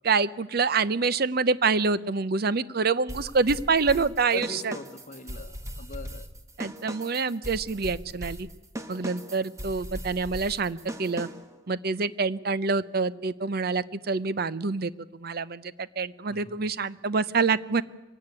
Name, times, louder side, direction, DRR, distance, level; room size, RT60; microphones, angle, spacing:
voice 1, 0.0-4.7 6.6-8.5 8.9-11.3 11.7-14.9 15.2-17.8, right 4 dB, 55° right, 16 dB, 0.7 m, -26 dB
sound 1, 3.1-11.6, equal, 15° right, 1.4 m, -39 dB
voice 2, 4.3-6.3 16.3-16.5, left 4 dB, 45° left, 7 dB, 1.4 m, -40 dB
23.5 x 16.5 x 9.6 m, 1.1 s
head